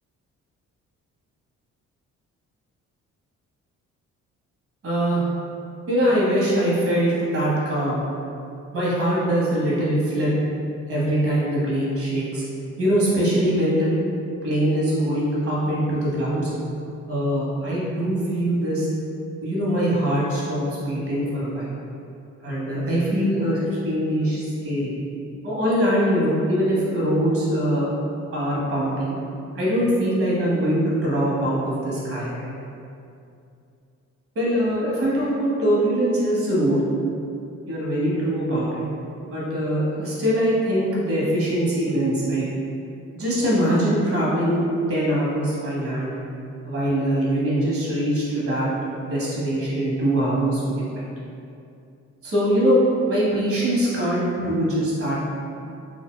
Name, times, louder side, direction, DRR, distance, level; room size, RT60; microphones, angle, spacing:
voice 1, 4.8-5.2 5.9-8.0 8.7-10.3 10.9-12.4 12.8-13.9 14.4-16.5 17.1-18.9 19.4-21.7 22.4-24.9 25.4-27.9 28.3-29.2 29.5-32.5 34.3-36.8 37.7-38.8 39.3-42.5 43.1-46.1 46.6-48.7 49.0-51.1 52.2-55.2, equal, 45° right, -6 dB, 1.3 m, -22 dB
4.6 x 2.6 x 2.2 m, 2.6 s
cardioid pair, 90°, 30 cm